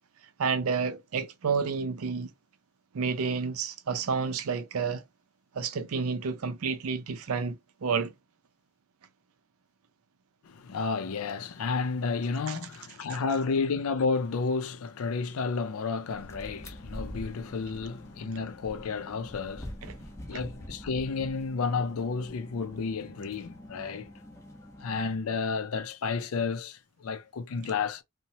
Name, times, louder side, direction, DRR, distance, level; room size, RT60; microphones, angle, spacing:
voice 1, 0.4-2.3 2.9-5.0 5.5-7.6 7.8-8.1 12.5-12.6 19.8-19.9, right 5 dB, 85° right, 0.5 m, -30 dB
voice 2, 10.4-19.8 20.1-24.1 24.8-28.0, left 4 dB, 80° left, 0.4 m, -31 dB
sound 1, 16.1-25.2, equal, 15° left, 0.4 m, -45 dB
2.9 x 2.1 x 2.7 m
head